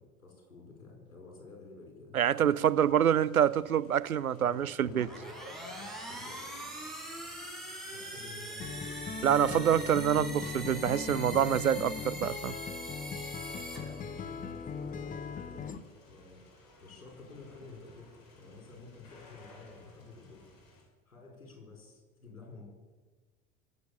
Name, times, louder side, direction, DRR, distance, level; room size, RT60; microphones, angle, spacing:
voice 1, 0.0-2.2 2.8-3.1 4.4-4.7 6.0-6.4 7.9-9.0 13.5-15.8 16.1-20.5 21.1-22.6, left 3 dB, 80° left, 5.4 m, -51 dB
voice 2, 2.1-5.1 9.2-12.5, right 9 dB, 90° right, 0.6 m, -26 dB
sound 1, 2.4-20.8, left 2 dB, 50° left, 5.8 m, -60 dB
sound 2, 4.8-14.5, right 1 dB, ahead, 4.9 m, -43 dB
Acoustic guitar, 8.6-15.8, left 6 dB, 20° left, 0.9 m, -39 dB
24.0 x 8.1 x 6.9 m
figure-of-eight pair, 80°, 41 cm